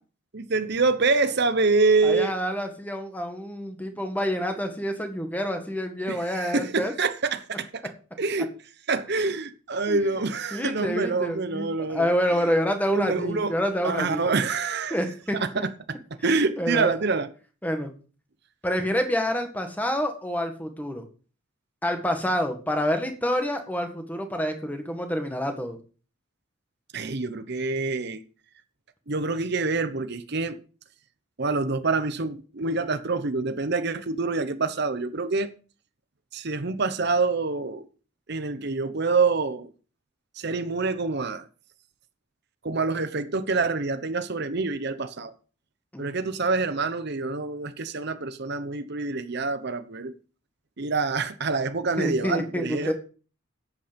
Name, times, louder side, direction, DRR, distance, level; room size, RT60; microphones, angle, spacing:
voice 1, 0.3-2.3 6.1-7.8 8.2-8.5 8.9-12.1 12.9-13.5 13.8-15.0 15.3-15.5 16.2-17.3 26.9-28.2 29.1-30.6 31.4-35.5 36.3-37.8 38.3-39.7 40.4-41.5 42.6-45.3 46.0-50.1 50.8-52.9, right 3 dB, 55° right, 0.9 m, -26 dB
voice 2, 2.0-6.9 9.2-9.3 9.9-10.2 10.5-14.2 14.9-15.6 16.6-16.9 17.6-17.9 18.6-21.0 21.8-25.8 45.9-46.3 52.0-52.9, equal, 10° left, 1.7 m, -28 dB
12.0 x 8.6 x 5.2 m
head